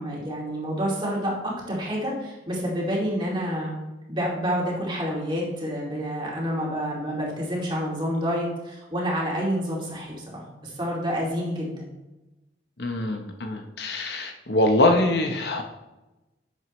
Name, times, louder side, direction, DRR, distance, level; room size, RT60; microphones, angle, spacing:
voice 1, 0.0-3.8 4.1-11.9, equal, 25° right, -4 dB, 2.5 m, -28 dB
voice 2, 12.8-15.6, left 1 dB, 65° left, 4 dB, 1.0 m, -23 dB
11.0 x 7.8 x 3.2 m, 1.0 s
head